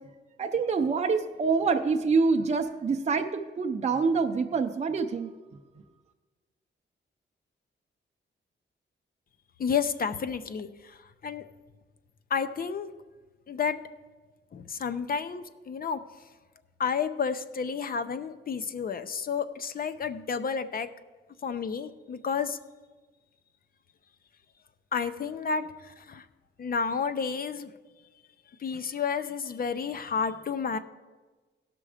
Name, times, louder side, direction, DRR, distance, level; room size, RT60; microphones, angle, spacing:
voice 1, 0.4-3.3 3.6-5.3, right 4 dB, 35° right, 4 dB, 0.6 m, -26 dB
voice 2, 9.6-11.4 12.3-12.9 13.5-13.8 14.5-16.0 16.8-20.9 21.4-22.6 24.9-26.3 26.6-27.7 28.6-30.8, left 6 dB, 45° left, 12 dB, 0.6 m, -31 dB
17.0 x 6.1 x 5.0 m, 1.3 s
wide cardioid pair, 135°, 20 cm